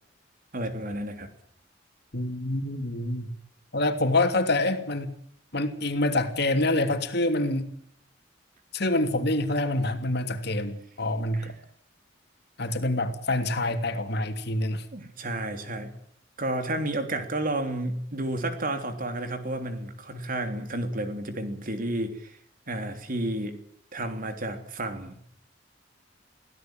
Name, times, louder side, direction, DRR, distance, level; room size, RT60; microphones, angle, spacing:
voice 1, 0.5-1.3 11.3-11.5 14.9-15.9 16.4-22.4 22.7-23.6 23.9-25.2, right 1 dB, 50° right, 7 dB, 3.3 m, -31 dB
voice 2, 2.1-3.3 3.7-5.1 5.5-7.7 8.7-11.5 12.6-14.8, left 2 dB, 60° left, 6 dB, 2.9 m, -26 dB
24.5 x 16.5 x 9.0 m, 0.67 s
head